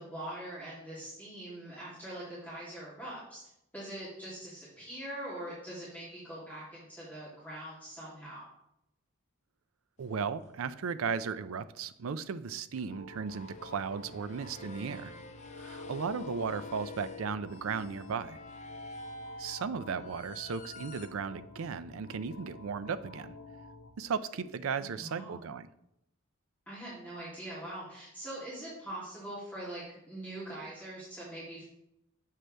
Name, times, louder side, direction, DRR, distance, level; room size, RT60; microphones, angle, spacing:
voice 1, 0.0-3.4 3.7-8.4 14.6-15.0 19.9-20.0 24.8-25.4 26.7-31.6, right 1 dB, 10° left, -11 dB, 2.8 m, -43 dB
sound 1, 10.0-10.8 12.2-12.3 13.3-21.1, left 2 dB, 35° left, 0.6 m, -48 dB
voice 2, 10.0-15.1 15.6-18.4 19.4-23.4 24.0-25.7, right 6 dB, 70° right, 12 dB, 0.4 m, -36 dB
sound 2, 12.9-23.9, left 3 dB, 75° left, 0.8 m, -50 dB
7.6 x 6.5 x 3.3 m, 0.82 s
head